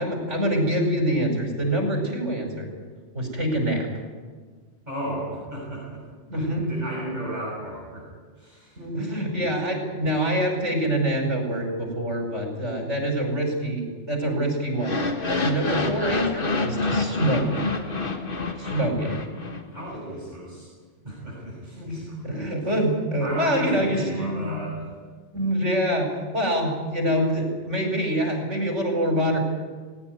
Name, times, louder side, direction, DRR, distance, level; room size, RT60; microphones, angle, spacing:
voice 1, 0.0-2.7 3.1-3.9 6.3-6.7 8.8-15.0 15.4-17.5 18.5-19.2 21.7-24.6 25.3-29.4, right 1 dB, 80° right, 2 dB, 6.0 m, -25 dB
voice 2, 4.9-6.0 6.3-8.0 8.4-8.8 19.7-20.7 21.0-22.4 23.2-24.9, equal, 40° right, -5 dB, 6.6 m, -33 dB
sound 1, 14.8-19.9, left 3 dB, 50° left, 1.7 m, -27 dB
19.5 x 17.5 x 9.6 m, 1.5 s
omnidirectional pair, 1.2 m